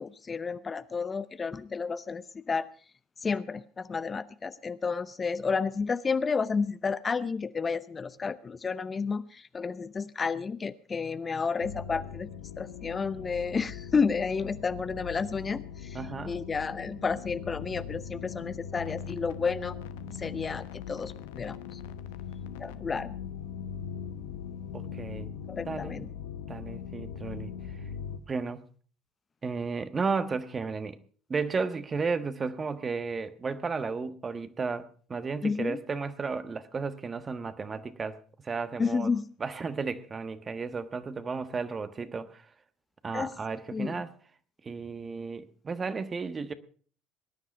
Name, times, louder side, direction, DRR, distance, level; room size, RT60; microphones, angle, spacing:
voice 1, 0.0-2.7 3.2-12.3 12.6-19.7 20.1-21.8 22.6-23.2 25.5-26.1 35.4-35.8 38.8-39.2 43.1-43.4 43.7-44.0, left 5 dB, 30° left, 0.7 m, -31 dB
sound 1, 11.6-28.2, left 7 dB, 80° left, 0.9 m, -40 dB
voice 2, 15.9-16.4 24.7-25.3 25.7-26.1 26.5-27.5 28.3-28.6 29.4-31.0 31.3-38.2 38.4-39.1 39.4-42.5 43.0-44.1 44.6-46.5, right 4 dB, 30° right, 1.3 m, -33 dB
20.0 x 10.0 x 5.4 m
hypercardioid pair, 70°, 0 cm